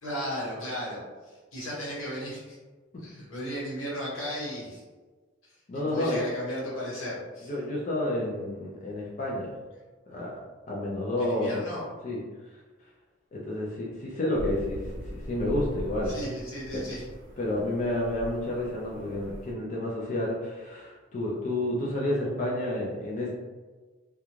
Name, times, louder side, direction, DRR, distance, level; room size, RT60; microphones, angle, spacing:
voice 1, 0.0-2.6 3.0-4.8 5.7-7.5 11.2-11.8 16.0-17.0, equal, 85° left, -7 dB, 1.2 m, -35 dB
voice 2, 5.7-6.2 7.4-9.5 10.1-10.4 10.7-11.6 12.0-12.2 13.3-16.1 16.7-16.8 17.4-23.3, left 1 dB, 35° left, -5 dB, 0.4 m, -30 dB
sound 1, 14.3-19.5, equal, 60° right, 0.5 m, -40 dB
2.4 x 2.2 x 3.0 m, 1.3 s
head